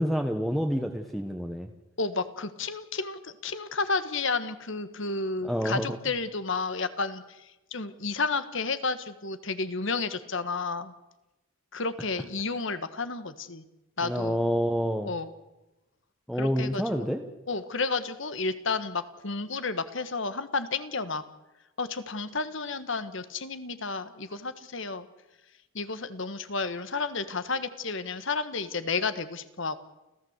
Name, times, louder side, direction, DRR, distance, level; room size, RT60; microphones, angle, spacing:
voice 1, 0.0-1.7 5.4-6.0 14.0-15.1 16.3-17.2, equal, ahead, 4 dB, 1.2 m, -28 dB
voice 2, 2.0-10.9 11.7-13.6 14.0-14.4 15.0-15.3 16.4-17.0 17.5-21.2 21.8-25.1 25.7-29.8, left 4 dB, 60° left, 12 dB, 1.5 m, -31 dB
29.5 x 15.0 x 8.1 m, 1.0 s
head